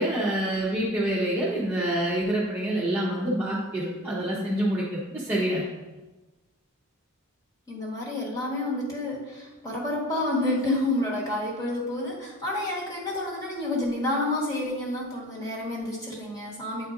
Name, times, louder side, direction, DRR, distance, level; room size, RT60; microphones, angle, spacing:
voice 1, 0.0-5.6, right 1 dB, 10° right, -7 dB, 0.9 m, -27 dB
voice 2, 7.7-16.9, left 1 dB, 20° left, -4 dB, 1.3 m, -29 dB
8.7 x 4.2 x 2.5 m, 1.1 s
head